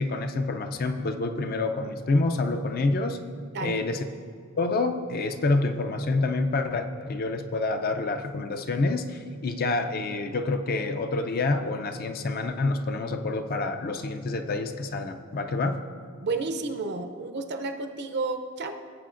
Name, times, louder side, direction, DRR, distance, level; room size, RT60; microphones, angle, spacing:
voice 1, 0.0-3.2 3.6-4.1 4.6-15.8, left 3 dB, 45° left, 6 dB, 0.5 m, -27 dB
voice 2, 16.2-18.7, right 3 dB, 50° right, 6 dB, 0.6 m, -31 dB
17.0 x 7.7 x 2.5 m, 2.1 s
head